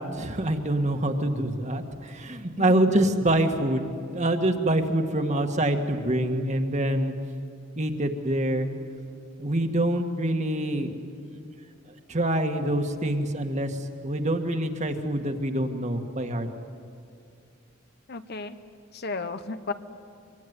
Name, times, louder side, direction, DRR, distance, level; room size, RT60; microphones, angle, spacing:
voice 1, 0.1-3.9 4.1-7.1 7.8-8.7 9.4-10.9 12.1-13.8 14.0-16.5, right 1 dB, 35° right, 5 dB, 1.8 m, -25 dB
voice 2, 2.6-2.9 18.1-18.6 18.9-19.7, left 3 dB, 55° left, 10 dB, 1.1 m, -34 dB
25.0 x 24.0 x 9.7 m, 2.4 s
head